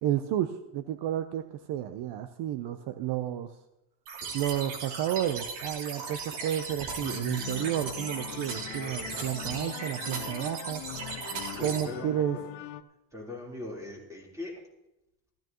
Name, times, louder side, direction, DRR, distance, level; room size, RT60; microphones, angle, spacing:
voice 1, 0.0-3.5 4.3-10.8 11.6-12.4, right 11 dB, 60° right, 10 dB, 0.8 m, -31 dB
sound 1, 4.1-11.8, right 4 dB, 80° right, 3.0 m, -37 dB
sound 2, 7.0-12.8, left 15 dB, 80° left, 0.8 m, -42 dB
voice 2, 11.6-12.4 13.1-14.5, left 2 dB, 5° right, -2 dB, 3.7 m, -40 dB
15.0 x 14.5 x 3.0 m, 0.91 s
cardioid pair, 135°, 47 cm